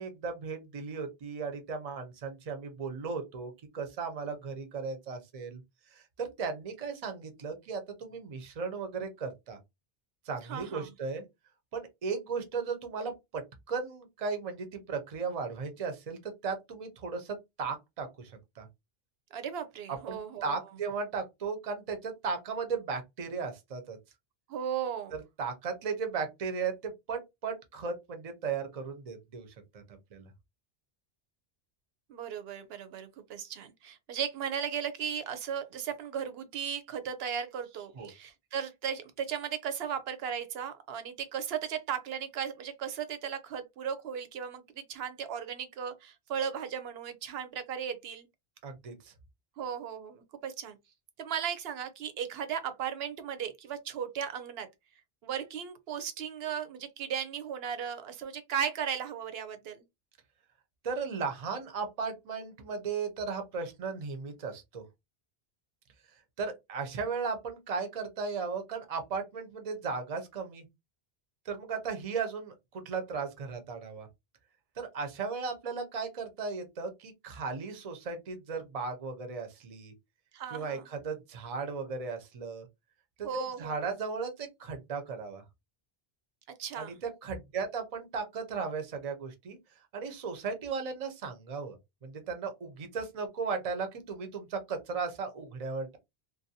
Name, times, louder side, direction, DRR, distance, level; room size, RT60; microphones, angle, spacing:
voice 1, 0.0-5.6 5.9-9.6 10.3-11.2 11.7-13.4 13.7-18.7 19.9-24.0 25.4-29.5 29.7-29.8 30.1-30.3 37.9-38.1 48.6-49.1 60.8-64.8 66.4-70.7 71.5-74.1 74.8-79.9 80.5-82.7 83.2-85.4 86.8-89.6 89.9-96.0, right 5 dB, 45° right, 0.6 m, -36 dB
voice 2, 10.5-10.9 19.3-20.6 24.5-25.2 32.1-48.3 49.6-50.8 51.2-54.7 55.2-59.8 80.3-80.8 83.2-83.9 86.6-87.0, right 8 dB, 75° right, 0.8 m, -36 dB
2.6 x 2.2 x 2.7 m
omnidirectional pair, 1.0 m